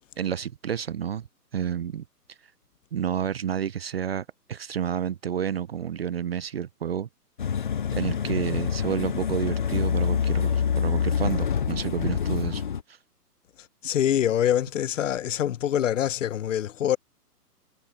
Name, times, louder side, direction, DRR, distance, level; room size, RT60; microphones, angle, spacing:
voice 1, 0.2-1.3 1.5-2.0 2.9-7.1 7.9-12.6 12.9-13.0, right 9 dB, 40° right, 0.5 m, -30 dB
sound 1, 7.4-12.8, left 7 dB, 35° left, 0.4 m, -26 dB
voice 2, 13.8-17.0, left 10 dB, 50° left, 0.9 m, -25 dB
hypercardioid pair, 145°, 48 cm